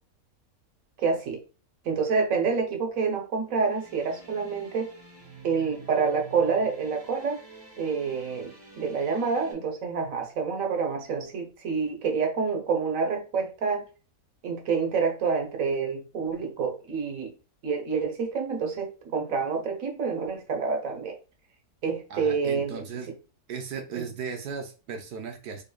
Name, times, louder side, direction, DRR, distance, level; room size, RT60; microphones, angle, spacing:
voice 1, 1.0-1.4 1.8-4.9 5.4-7.4 7.8-13.9 14.4-17.3 17.6-21.2 21.8-22.8 23.9-24.1, right 5 dB, 60° right, 1.3 m, -28 dB
sound 1, 3.7-9.5, right 4 dB, 15° right, 1.0 m, -49 dB
voice 2, 22.1-23.1 23.5-25.6, right 6 dB, 85° right, 1.4 m, -36 dB
3.9 x 3.6 x 2.2 m
omnidirectional pair, 1.6 m